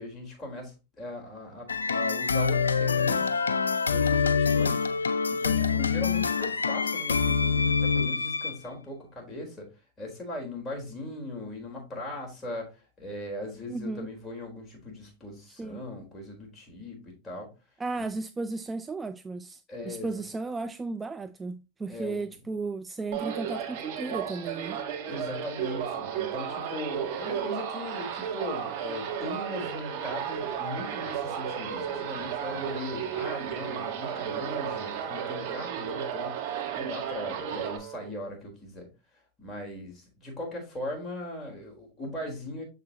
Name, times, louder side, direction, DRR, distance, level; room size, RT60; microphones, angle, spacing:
voice 1, 0.0-3.6 3.9-4.9 5.3-9.7 10.0-17.5 18.0-18.1 19.7-20.2 21.9-22.3 25.1-36.4 36.7-38.9 39.4-42.6, left 1 dB, 25° left, 3.9 m, -39 dB
sound 1, 1.7-8.6, left 5 dB, 90° left, 0.4 m, -25 dB
voice 2, 13.7-14.1 15.5-15.8 17.8-24.8, right 3 dB, 15° right, 0.4 m, -35 dB
sound 2, 23.1-37.8, right 8 dB, 60° right, 1.4 m, -34 dB
Wind instrument woodwind instrument, 25.5-38.2, right 14 dB, 40° right, 1.2 m, -43 dB
7.2 x 5.8 x 2.9 m
hypercardioid pair, 95°, 0 cm